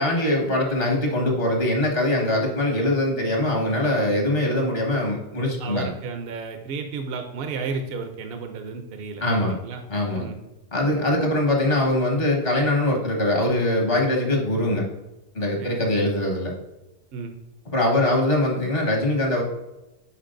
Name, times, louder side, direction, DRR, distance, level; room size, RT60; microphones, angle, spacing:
voice 1, 0.0-5.9 9.2-9.5 9.9-10.3 10.7-14.9 15.4-16.5 17.7-19.4, left 1 dB, 60° left, 0 dB, 1.6 m, -22 dB
voice 2, 5.6-9.8 10.1-10.4 15.6-15.8 17.1-17.3, right 4 dB, 65° right, 5 dB, 0.8 m, -33 dB
9.9 x 4.7 x 2.5 m, 0.99 s
omnidirectional pair, 1.1 m